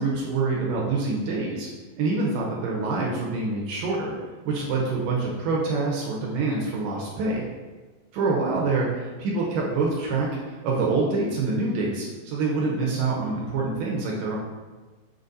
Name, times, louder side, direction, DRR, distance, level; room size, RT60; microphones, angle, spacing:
voice 1, 0.0-1.7 2.0-4.1 4.5-7.4 8.1-14.4, right 3 dB, 70° right, -2 dB, 2.3 m, -26 dB
6.4 x 4.1 x 4.0 m, 1.3 s
omnidirectional pair, 4.4 m